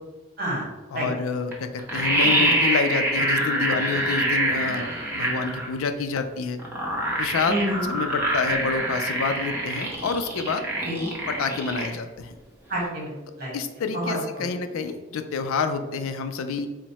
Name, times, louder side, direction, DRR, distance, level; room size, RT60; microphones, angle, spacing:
voice 1, 0.9-4.9 5.1-6.6 7.2-7.6 7.9-10.6 11.3-12.3 13.5-16.7, left 5 dB, 70° left, 8 dB, 0.4 m, -28 dB
sound 1, 1.5-1.6 1.8-5.7 6.6-11.9 12.2-12.3, right 1 dB, 10° right, 0.7 m, -25 dB
voice 2, 7.5-7.9 10.8-11.1 12.7-13.5 13.9-14.2, equal, 45° right, -4 dB, 1.5 m, -28 dB
4.5 x 2.1 x 4.1 m, 1.1 s
head